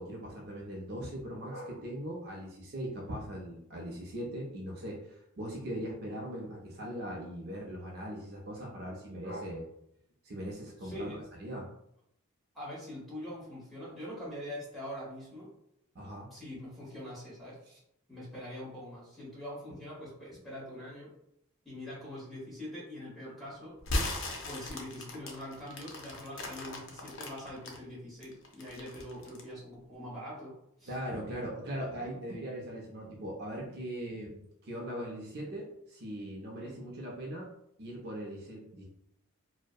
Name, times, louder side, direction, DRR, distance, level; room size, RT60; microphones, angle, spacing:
voice 1, 0.0-9.7 10.2-11.7 15.9-16.3 30.9-37.5 37.8-38.9, equal, 45° right, -2 dB, 0.4 m, -40 dB
voice 2, 10.8-11.2 12.5-15.5 16.3-17.8 18.1-21.1 21.6-23.8 24.4-31.0 36.6-36.8, left 1 dB, ahead, -7 dB, 0.9 m, -43 dB
sound 1, 23.8-27.8 28.2-29.5, left 1 dB, 60° left, 0.5 m, -37 dB
2.6 x 2.0 x 2.3 m, 0.76 s
head